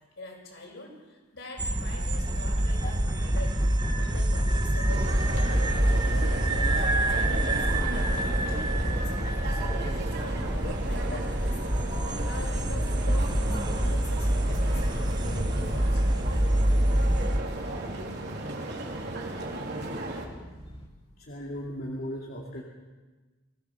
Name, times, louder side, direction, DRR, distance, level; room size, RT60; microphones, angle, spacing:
voice 1, 0.2-3.6 4.0-9.1 9.5-16.5, left 1 dB, 70° left, -1 dB, 7.9 m, -44 dB
sound 1, 1.6-17.4, right 1 dB, 20° right, 1.2 m, -26 dB
sound 2, 4.9-20.3, right 2 dB, 60° right, 3.8 m, -35 dB
sound 3, 8.4-20.9, equal, 30° left, 2.3 m, -45 dB
voice 2, 21.2-22.6, equal, 50° left, -2 dB, 2.5 m, -37 dB
24.0 x 17.5 x 7.0 m, 1.3 s
head